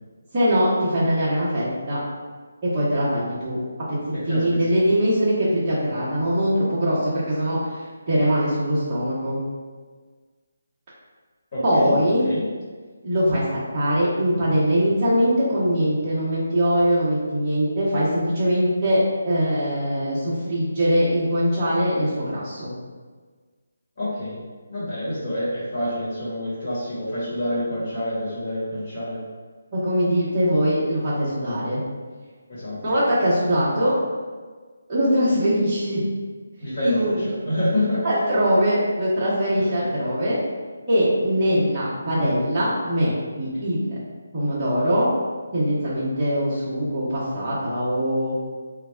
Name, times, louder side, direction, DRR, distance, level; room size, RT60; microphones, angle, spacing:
voice 1, 0.3-2.0 2.6-3.6 3.9-4.0 4.3-7.6 8.1-9.4 11.6-12.2 13.0-22.7 25.1-25.2 29.7-31.8 32.8-33.9 34.9-36.0 36.8-37.3 38.0-40.4 40.9-43.9 44.3-45.1 45.5-48.3, equal, 15° right, -12 dB, 1.0 m, -22 dB
voice 2, 4.1-4.7 11.5-12.0 12.2-12.4 24.0-24.4 24.7-29.2 32.5-32.8 36.6-38.0 39.5-39.9, left 1 dB, 35° left, -10 dB, 1.2 m, -27 dB
3.3 x 2.3 x 3.3 m, 1.5 s
hypercardioid pair, 170°, 0 cm